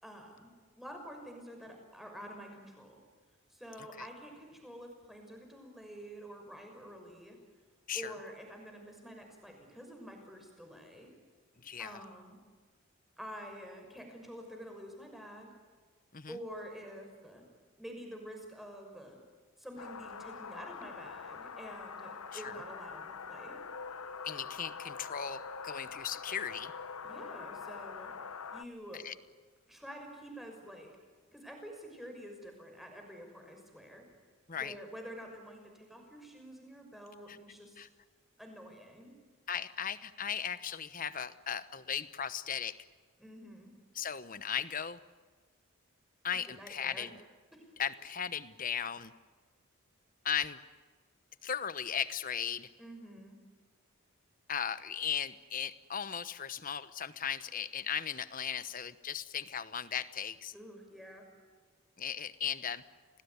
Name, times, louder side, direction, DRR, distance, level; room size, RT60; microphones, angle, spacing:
voice 1, 0.0-3.0 3.5-7.4 7.9-11.1 11.8-12.4 13.2-15.5 16.3-17.5 17.8-19.2 19.6-23.6 27.0-28.1 28.5-29.0 29.7-30.9 31.3-34.0 34.6-37.8 38.4-39.1 43.2-43.7 46.4-47.1 47.5-47.7 52.8-53.4 60.5-61.3, equal, ahead, 2 dB, 6.1 m, -48 dB
voice 2, 11.6-12.0 16.1-16.4 22.3-22.6 24.2-26.7 28.9-29.1 34.5-34.7 37.3-37.4 37.8-37.9 39.5-42.8 43.9-45.0 46.2-47.2 47.8-49.1 50.2-50.6 51.4-52.7 54.5-60.5 62.0-62.8, left 8 dB, 40° left, 14 dB, 1.0 m, -37 dB
sound 1, 19.8-28.6, left 5 dB, 85° left, 1.2 m, -44 dB
29.5 x 20.0 x 9.7 m, 1.4 s
head